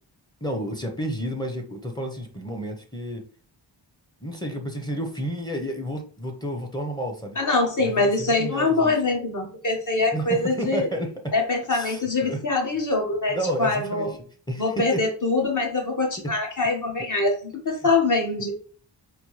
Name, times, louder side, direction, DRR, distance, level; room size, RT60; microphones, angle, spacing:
voice 1, 0.4-3.2 4.2-7.4 7.8-9.0 10.1-11.3 11.7-12.4 13.3-14.1 14.5-15.1 16.2-16.3 17.8-17.9, right 1 dB, 10° left, 3 dB, 0.7 m, -31 dB
voice 2, 7.4-10.9 11.3-14.1 14.6-18.5, left 3 dB, 45° left, 1 dB, 1.2 m, -24 dB
4.2 x 2.1 x 3.0 m, 0.43 s
wide cardioid pair, 70°, 43 cm